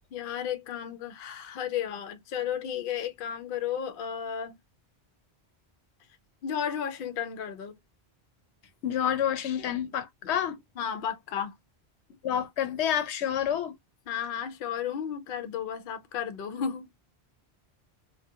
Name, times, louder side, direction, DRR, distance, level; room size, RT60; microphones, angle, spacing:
voice 1, 0.1-4.6 6.4-7.8 10.2-10.3 10.8-11.5 14.1-16.9, left 8 dB, 65° left, 0.7 m, -33 dB
voice 2, 8.8-10.6 12.2-13.8, left 9 dB, 90° left, 0.9 m, -28 dB
2.4 x 2.2 x 2.6 m
omnidirectional pair, 1.1 m